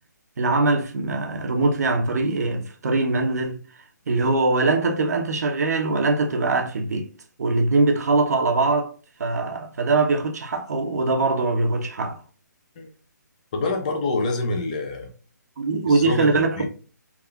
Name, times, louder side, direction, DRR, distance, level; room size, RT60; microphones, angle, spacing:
voice 1, 0.4-3.6 4.1-7.1 7.4-8.9 9.2-12.2 15.6-16.6, right 3 dB, 60° right, 0.6 m, -22 dB
voice 2, 13.5-15.1 15.9-16.7, left 3 dB, 25° left, 0.4 m, -26 dB
3.5 x 2.3 x 2.3 m
hypercardioid pair, 165°, 10 cm